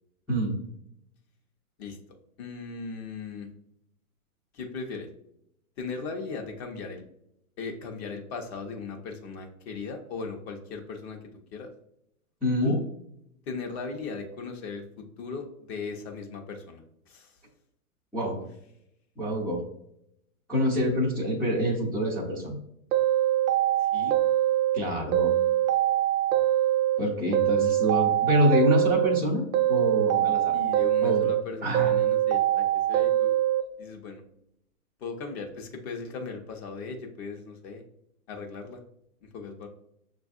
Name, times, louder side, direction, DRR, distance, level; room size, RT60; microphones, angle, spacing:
voice 1, 2.4-3.5 4.5-5.1 5.8-7.0 7.6-11.2 11.5-11.7 12.6-12.8 13.5-17.4 18.2-18.5 23.8-24.2 30.5-33.3 33.8-34.2 35.0-37.8 38.3-38.8 39.3-39.7, left 4 dB, 45° left, 4 dB, 0.9 m, -38 dB
voice 2, 12.4-12.7 18.1-18.4 19.2-19.6 20.5-22.5 24.7-25.3 27.0-30.5 31.0-31.3 31.6-31.9, equal, ahead, -10 dB, 0.3 m, -26 dB
sound 1, 22.9-24.8 25.1-27.0 27.3-29.2 29.5-31.4 31.7-33.6, right 12 dB, 70° right, 0.6 m, -23 dB
6.4 x 2.5 x 2.4 m, 0.76 s
hypercardioid pair, 125°, 44 cm